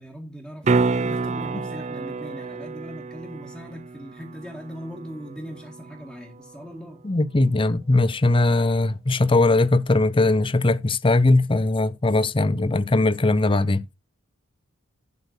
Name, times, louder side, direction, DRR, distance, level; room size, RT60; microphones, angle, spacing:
voice 1, 0.0-7.0, equal, ahead, 1.9 m, -39 dB
sound 1, 0.6-6.7 11.3-11.4, right 4 dB, 35° right, 0.5 m, -29 dB
voice 2, 7.0-13.8, left 2 dB, 25° left, 0.6 m, -20 dB
11.5 x 4.3 x 6.7 m
head